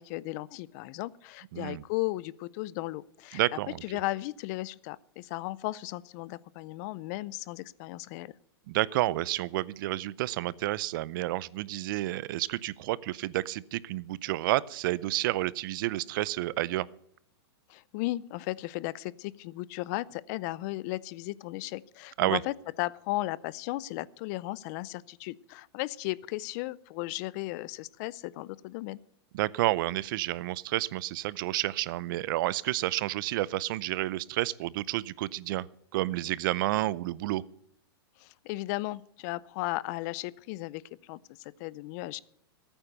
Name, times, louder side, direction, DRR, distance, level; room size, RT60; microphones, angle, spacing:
voice 1, 0.0-3.4 3.8-8.3 17.7-29.0 38.2-42.2, left 19 dB, 40° left, 22 dB, 0.5 m, -35 dB
voice 2, 1.5-1.8 3.3-3.8 8.7-16.9 22.2-22.4 29.3-35.7 35.9-37.4, right 16 dB, 55° right, 22 dB, 0.6 m, -30 dB
14.5 x 9.0 x 6.7 m, 0.73 s
hypercardioid pair, 140°, 13 cm